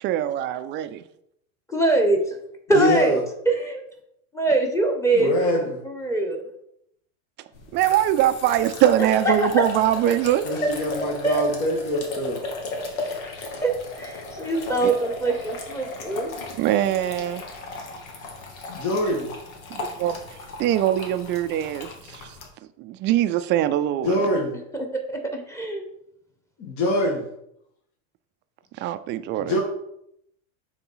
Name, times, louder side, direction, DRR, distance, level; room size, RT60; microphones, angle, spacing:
voice 1, 0.0-1.0 7.7-10.5 14.8-14.9 16.6-17.4 19.7-22.4 22.8-24.3 28.7-29.6, right 11 dB, 30° right, 11 dB, 0.3 m, -23 dB
voice 2, 1.7-2.4 2.7-3.2 3.4-3.8 4.3-6.4 9.0-9.7 10.6-10.7 11.2-11.4 13.6-16.3 25.1-25.8, right 2 dB, 5° left, 3 dB, 1.2 m, -23 dB
voice 3, 2.7-3.2 5.1-5.6 10.4-12.4 18.7-19.3 24.0-24.5 26.6-27.2 29.4-29.6, equal, 50° left, -1 dB, 1.7 m, -24 dB
sound 1, 7.5-22.5, left 3 dB, 85° left, 1.7 m, -36 dB
6.8 x 4.1 x 5.6 m, 0.76 s
supercardioid pair, 135°, 41 cm